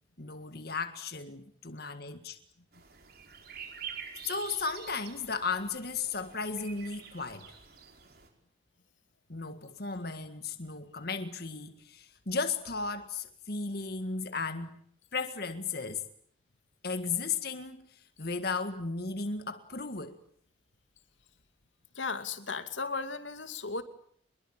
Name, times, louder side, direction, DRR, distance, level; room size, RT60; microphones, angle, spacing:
voice 1, 0.2-2.4 4.2-7.5 9.3-14.8 15.1-16.0 16.8-20.2, left 4 dB, 55° left, 1.8 m, -35 dB
sound 1, 2.7-8.3, right 7 dB, 55° right, 5.1 m, -47 dB
voice 2, 21.9-23.8, left 4 dB, 90° left, 2.6 m, -35 dB
25.0 x 22.0 x 8.8 m
head